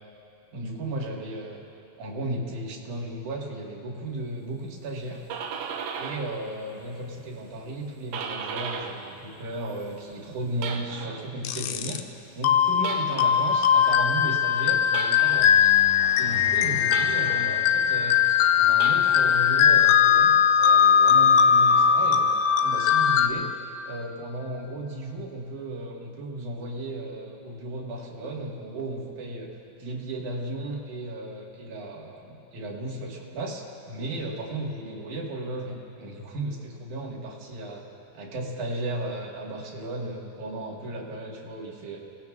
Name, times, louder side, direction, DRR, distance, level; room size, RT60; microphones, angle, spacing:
voice 1, 0.5-1.6 2.0-5.2 6.0-12.0 12.4-15.7 16.2-18.2 18.6-22.3 22.6-23.5 23.9-29.5 29.8-37.9 38.1-42.0, right 1 dB, 60° right, -2 dB, 2.8 m, -35 dB
sound 1, 5.0-6.4 6.7-9.1 9.4-11.3 12.8-13.5 14.9-15.6 16.9-17.6 18.7-19.5, right 6 dB, 90° right, 2.8 m, -36 dB
sound 2, 11.5-12.0 12.4-23.3, left 8 dB, 80° left, 2.1 m, -20 dB
sound 3, 15.4-20.0, equal, 5° right, 4.5 m, -43 dB
29.5 x 19.0 x 2.4 m, 2.7 s
omnidirectional pair, 4.2 m